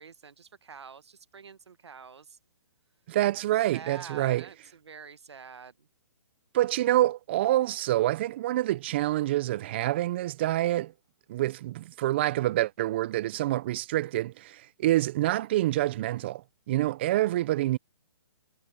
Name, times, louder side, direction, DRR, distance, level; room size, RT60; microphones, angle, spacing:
voice 1, 0.0-2.4 3.7-5.9, right 6 dB, 90° right, 1.3 m, -47 dB
voice 2, 3.1-4.5 6.5-10.9 11.3-17.8, right 15 dB, 25° right, 0.3 m, -27 dB
hypercardioid pair, 155°, 14 cm